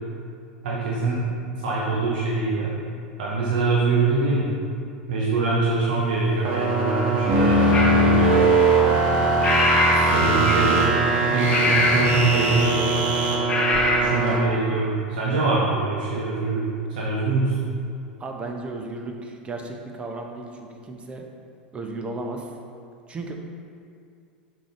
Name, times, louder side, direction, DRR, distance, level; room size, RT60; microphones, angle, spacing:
voice 1, 0.6-1.2 1.6-2.7 3.2-4.5 5.1-8.4 9.9-10.9 11.3-12.9 14.0-16.6 16.9-17.5, right 3 dB, 60° right, -5 dB, 0.9 m, -24 dB
sound 1, 6.4-14.4, right 2 dB, 40° right, 1.1 m, -20 dB
sound 2, 7.7-8.0 9.4-10.1 10.4-10.8 11.5-12.1 13.5-14.1, left 2 dB, 20° left, 1.0 m, -22 dB
voice 2, 18.2-21.3 21.7-22.4 23.1-23.4, right 2 dB, 20° right, 3 dB, 0.7 m, -34 dB
5.9 x 5.0 x 3.8 m, 2.4 s
figure-of-eight pair, 85°, 5 cm